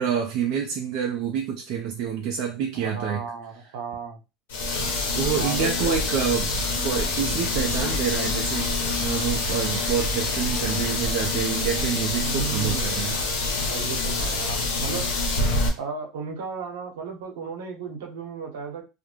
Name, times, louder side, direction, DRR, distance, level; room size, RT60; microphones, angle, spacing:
voice 1, 0.0-3.2 5.1-13.2, right 7 dB, 65° right, 1 dB, 0.5 m, -28 dB
voice 2, 2.8-4.2 5.3-6.0 12.2-13.0 13.7-15.1 15.8-18.8, right 6 dB, 85° right, 1 dB, 0.9 m, -34 dB
sound 1, 4.5-15.7, left 2 dB, 85° left, 0.7 m, -26 dB
sound 2, 6.0-11.0, left 1 dB, 10° left, 0.7 m, -40 dB
2.4 x 2.1 x 3.1 m, 0.27 s
supercardioid pair, 100°, 0 cm